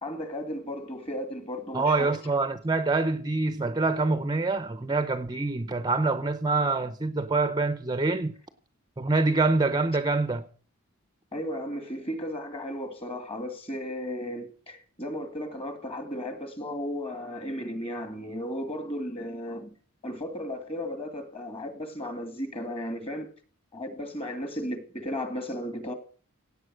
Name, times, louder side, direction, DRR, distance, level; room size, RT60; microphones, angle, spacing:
voice 1, 0.0-2.1 11.3-19.7 20.0-23.3 23.7-25.9, equal, 30° left, 2.2 m, -35 dB
voice 2, 1.7-8.3 9.0-10.5, right 3 dB, 20° right, 0.7 m, -25 dB
16.5 x 8.5 x 6.3 m
head